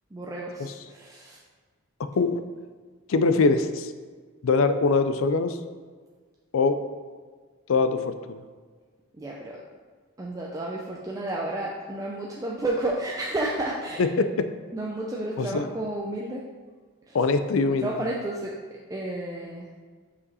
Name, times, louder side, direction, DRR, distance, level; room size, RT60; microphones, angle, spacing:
voice 1, 0.1-1.4 9.2-9.6 10.2-14.1 14.7-16.4 17.1-17.2 17.7-18.5 18.9-19.7, right 1 dB, 15° right, -3 dB, 0.4 m, -31 dB
voice 2, 2.0-2.4 3.1-3.9 4.4-5.6 6.5-6.8 7.7-8.4 14.0-14.5 15.4-15.7 17.1-17.9, left 4 dB, 75° left, 10 dB, 0.4 m, -23 dB
5.4 x 5.0 x 4.1 m, 1.5 s
head